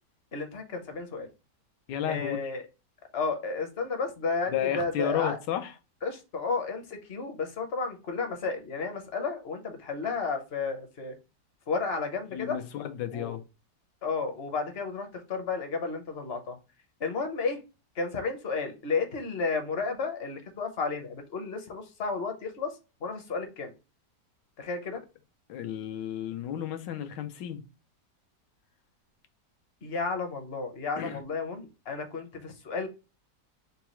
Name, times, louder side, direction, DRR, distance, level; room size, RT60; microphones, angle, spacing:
voice 1, 0.3-1.3 2.1-2.6 3.1-5.4 6.0-11.1 11.7-12.6 13.1-13.4 14.0-16.6 17.0-17.6 18.0-22.7 23.0-23.7 24.6-25.0 29.8-32.9, left 4 dB, 50° left, 0.8 m, -32 dB
voice 2, 1.9-2.4 4.5-5.7 12.3-13.4 25.5-27.6 31.0-31.2, left 10 dB, 85° left, 1.3 m, -32 dB
4.0 x 2.3 x 4.3 m
omnidirectional pair, 1.8 m